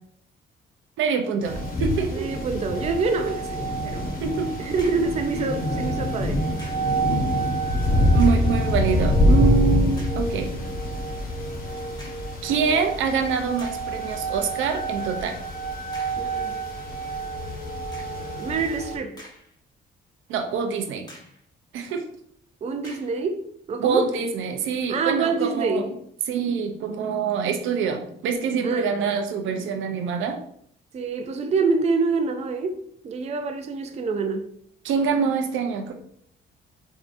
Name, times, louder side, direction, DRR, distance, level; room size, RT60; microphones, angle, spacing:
voice 1, 1.0-2.3 4.2-4.5 8.1-10.5 12.4-15.4 20.3-21.1 21.7-22.1 23.8-25.8 26.3-30.4 34.8-35.9, right 6 dB, 80° right, 0.6 m, -25 dB
sound 1, 1.4-19.0, equal, 45° left, 1.0 m, -25 dB
voice 2, 2.1-4.1 4.6-6.4 16.2-16.5 18.4-19.2 22.6-24.1 24.9-25.9 28.6-29.0 30.9-34.4, right 4 dB, 35° right, 0.4 m, -26 dB
sound 2, 4.8-5.2 6.6-7.0 8.1-8.6 9.2-9.3 10.0-10.3 12.0-12.4 13.1-13.2 13.6-14.0 15.9-16.3 17.9-18.3 18.9-19.7 20.1-20.2 21.1-21.5 22.8-23.2, equal, 20° left, 1.3 m, -46 dB
4.5 x 2.7 x 2.5 m
cardioid pair, 90°, 20 cm